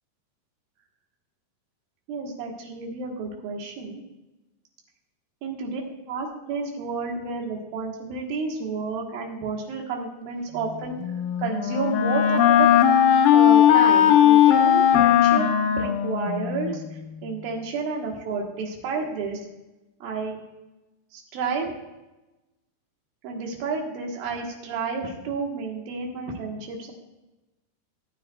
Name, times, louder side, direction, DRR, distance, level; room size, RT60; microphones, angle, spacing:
voice 1, 2.1-4.0 5.4-5.8 6.1-11.0 11.4-12.7 13.3-15.5 15.8-16.8 17.2-19.4 20.0-20.4 21.1-21.7 23.2-26.9, right 4 dB, 85° right, 0 dB, 3.2 m, -30 dB
Wind instrument woodwind instrument, 11.0-16.8, left 10 dB, 85° left, 2.4 m, -18 dB
17.5 x 9.6 x 2.3 m, 1.0 s
omnidirectional pair, 4.0 m